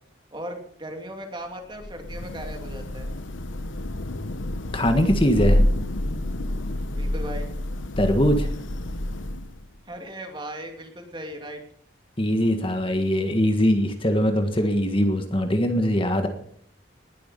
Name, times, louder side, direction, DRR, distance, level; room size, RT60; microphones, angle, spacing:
voice 1, 0.3-3.1 6.9-7.5 9.9-11.6, right 1 dB, 25° right, 3 dB, 2.7 m, -37 dB
Thunder / Rain, 1.7-9.8, left 1 dB, 90° left, 1.1 m, -27 dB
voice 2, 4.7-5.6 8.0-8.5 12.2-16.3, equal, 30° left, 6 dB, 1.6 m, -21 dB
20.0 x 12.0 x 5.4 m, 0.66 s
head